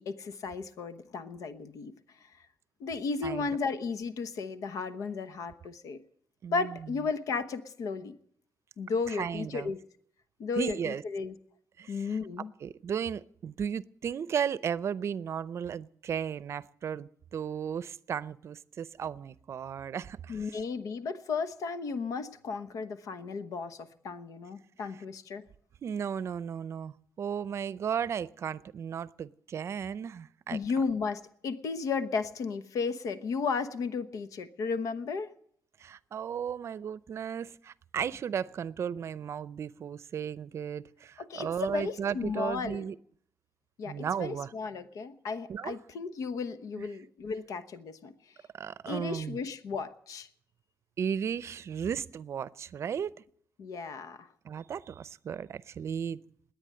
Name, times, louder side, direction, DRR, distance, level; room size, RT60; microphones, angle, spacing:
voice 1, 0.0-1.9 2.8-6.0 6.5-8.2 8.8-9.8 10.4-11.3 11.9-12.5 20.3-25.4 30.5-35.3 41.2-42.9 43.8-48.1 48.9-50.3 53.6-54.3, left 4 dB, 85° left, 12 dB, 1.1 m, -34 dB
voice 2, 6.4-6.9 9.1-9.7 10.6-11.0 11.8-20.6 25.8-30.6 35.8-43.0 43.9-44.5 45.5-45.8 46.8-46.9 48.5-49.4 51.0-53.1 54.4-56.2, right 8 dB, 55° right, 18 dB, 0.5 m, -35 dB
21.0 x 8.9 x 7.7 m, 0.63 s
cardioid pair, 105°, 6 cm